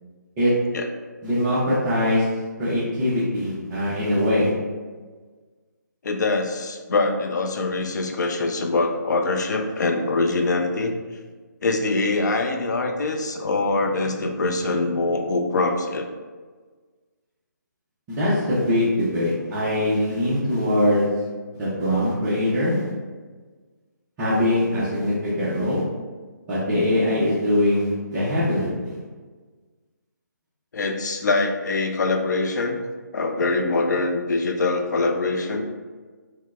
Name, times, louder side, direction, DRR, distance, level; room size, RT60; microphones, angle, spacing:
voice 1, 1.2-2.2 2.6-4.5 18.1-21.1 21.5-22.9 24.2-25.8 26.5-28.9, left 1 dB, 15° right, -12 dB, 0.5 m, -22 dB
voice 2, 6.0-10.9 11.6-16.1 30.7-32.8 33.1-35.7, left 3 dB, 65° left, 4 dB, 0.5 m, -23 dB
4.5 x 2.0 x 2.3 m, 1.4 s
hypercardioid pair, 165°, 10 cm